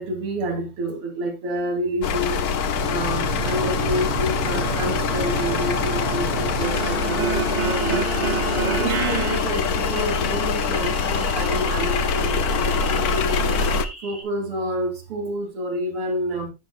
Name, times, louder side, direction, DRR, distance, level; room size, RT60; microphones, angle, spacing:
voice 1, 0.0-2.5 2.8-8.0 8.5-13.5 14.0-16.5, equal, 90° right, 3.2 m, -28 dB
sound 1, 2.0-13.9, left 5 dB, 60° left, 1.0 m, -24 dB
sound 2, 2.7-9.4, right 9 dB, 70° right, 1.6 m, -29 dB
sound 3, 7.5-14.2, equal, 10° right, 4.3 m, -39 dB
14.5 x 5.8 x 2.6 m
omnidirectional pair, 2.4 m